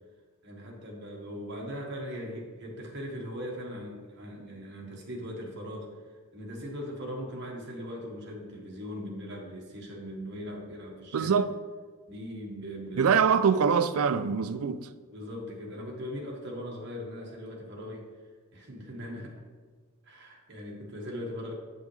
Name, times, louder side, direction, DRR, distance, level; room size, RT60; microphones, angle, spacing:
voice 1, 0.4-5.9 6.3-11.4 12.1-13.4 15.1-18.1 18.5-19.4 20.0-21.5, equal, 50° right, 1.4 m, -39 dB
voice 2, 11.1-11.5 13.0-14.9, right 6 dB, 75° right, 0.4 m, -24 dB
8.4 x 5.4 x 3.2 m
head